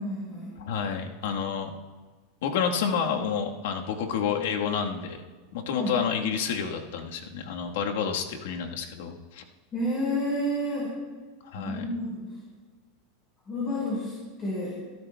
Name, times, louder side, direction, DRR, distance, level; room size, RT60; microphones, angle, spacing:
voice 1, 0.0-0.5 5.8-5.9 9.7-10.9 11.5-12.2 13.5-14.1 14.4-14.7, left 1 dB, 25° left, -6 dB, 4.5 m, -30 dB
voice 2, 0.6-1.7 2.4-5.2 5.5-9.4 11.4-11.9, left 7 dB, 75° left, 2 dB, 1.4 m, -29 dB
20.0 x 12.5 x 2.3 m, 1.3 s
supercardioid pair, 130°, 0 cm